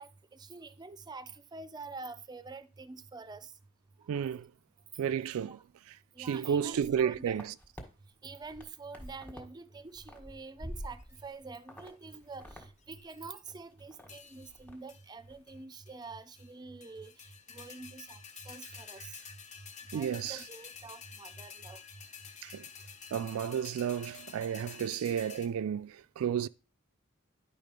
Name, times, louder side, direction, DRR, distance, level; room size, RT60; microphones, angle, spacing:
voice 1, 0.0-3.5 5.4-5.6 6.2-7.4 8.2-18.2 18.5-19.2 19.9-21.8, right 3 dB, 20° right, 0.5 m, -46 dB
voice 2, 4.1-4.5 5.0-5.6 5.9-7.5 19.9-20.4 22.4-22.7 23.1-26.5, right 8 dB, 80° right, 0.3 m, -32 dB
sound 1, 6.7-7.8 8.3-9.5 9.8-11.3 11.7-11.9 12.2-12.7 12.9-13.0 13.5-14.1 14.4-14.8 15.1-15.4, equal, 5° left, 1.4 m, -47 dB
sound 2, 10.8-11.3 11.9-12.4 12.8-13.5 14.1-14.6 14.9-15.1 15.5-15.6 15.9-16.5 16.8-25.5, left 7 dB, 35° left, 0.8 m, -50 dB
10.0 x 3.6 x 5.2 m
head